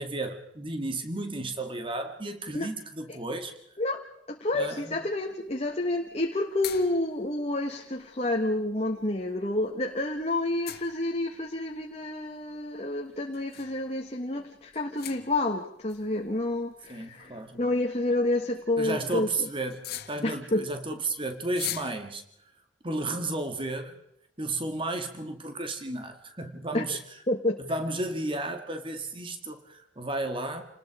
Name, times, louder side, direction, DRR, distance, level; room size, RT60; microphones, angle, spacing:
voice 1, 0.0-3.5 4.5-5.0 16.9-17.6 18.8-22.2 22.8-23.9 24.4-27.0 27.7-30.6, right 2 dB, 30° right, 7 dB, 2.1 m, -33 dB
voice 2, 3.8-19.5 20.2-20.7 26.7-26.8 27.3-27.6, left 2 dB, 35° left, 2 dB, 1.5 m, -29 dB
sound 1, 5.2-21.9, left 11 dB, 55° left, 1.6 m, -45 dB
29.0 x 20.0 x 5.0 m, 0.74 s
head